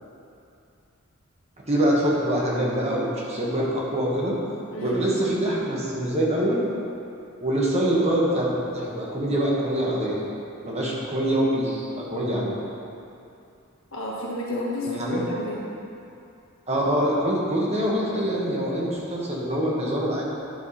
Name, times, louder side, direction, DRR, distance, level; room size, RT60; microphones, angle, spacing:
voice 1, 1.7-4.4 4.8-6.6 7.4-10.2 10.6-12.6 14.9-15.2 16.7-20.3, right 1 dB, 30° right, -4 dB, 1.3 m, -24 dB
voice 2, 4.7-5.0 13.9-15.6, left 1 dB, 70° left, -5 dB, 1.7 m, -30 dB
10.5 x 5.9 x 4.2 m, 2.6 s
head